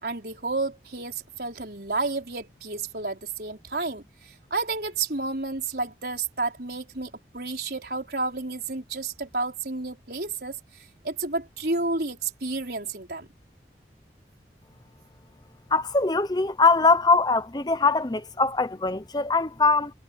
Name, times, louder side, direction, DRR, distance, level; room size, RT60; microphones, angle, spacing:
voice 1, 0.0-10.6 11.0-13.3, right 3 dB, 60° right, 5.0 m, -31 dB
voice 2, 15.7-19.9, left 3 dB, 25° left, 0.8 m, -22 dB
head